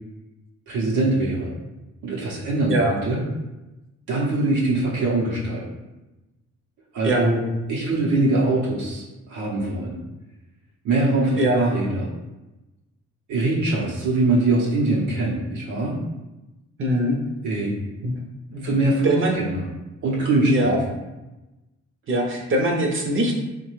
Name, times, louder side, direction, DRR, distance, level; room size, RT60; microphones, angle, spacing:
voice 1, 0.7-1.5 2.0-3.2 4.1-5.6 6.9-7.4 7.7-9.0 9.3-10.0 10.8-12.1 13.3-16.0 17.4-17.7 18.6-19.7 20.0-20.8, right 2 dB, 80° right, -5 dB, 0.8 m, -22 dB
voice 2, 16.8-17.2 18.0-18.2 18.5-19.5 20.5-20.8 22.1-23.3, right 1 dB, 45° right, 1 dB, 0.7 m, -22 dB
3.1 x 2.2 x 3.1 m, 1.0 s
cardioid pair, 90°, 30 cm